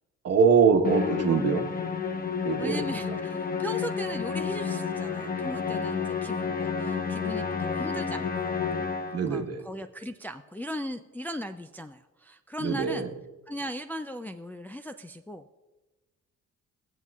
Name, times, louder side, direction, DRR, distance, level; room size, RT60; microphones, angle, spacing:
voice 1, 0.2-1.7 2.4-2.8 9.1-9.6 12.6-13.1, right 6 dB, 55° right, 4 dB, 1.2 m, -23 dB
Musical instrument, 0.8-9.4, left 6 dB, 30° left, 0.9 m, -30 dB
voice 2, 2.6-13.1 13.5-15.4, equal, 5° left, 6 dB, 0.4 m, -38 dB
21.5 x 7.4 x 2.3 m, 1.2 s
cardioid pair, 90°, 30 cm